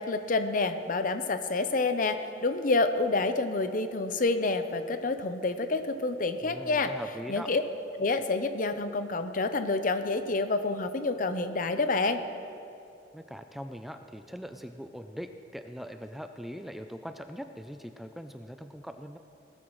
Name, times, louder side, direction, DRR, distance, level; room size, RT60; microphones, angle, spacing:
voice 1, 0.0-6.9 7.3-7.6 8.0-12.3, left 3 dB, 50° left, 9 dB, 0.7 m, -28 dB
voice 2, 6.4-7.5 13.1-19.2, equal, ahead, 7 dB, 0.4 m, -41 dB
18.5 x 14.0 x 3.1 m, 2.6 s
head